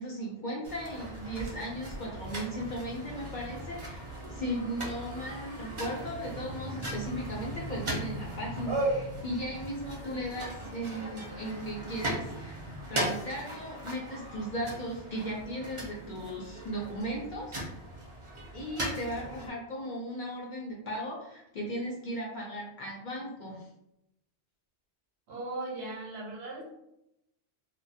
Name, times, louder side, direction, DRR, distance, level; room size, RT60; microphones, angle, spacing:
voice 1, 0.0-4.0 4.3-12.6 12.9-17.6 18.5-23.7, equal, 55° left, -2 dB, 0.5 m, -37 dB
sound 1, 0.6-19.5, right 1 dB, 35° right, 0.5 m, -38 dB
voice 2, 25.3-26.7, right 2 dB, 70° right, -1 dB, 0.9 m, -38 dB
2.3 x 2.2 x 2.6 m, 0.82 s
omnidirectional pair, 1.2 m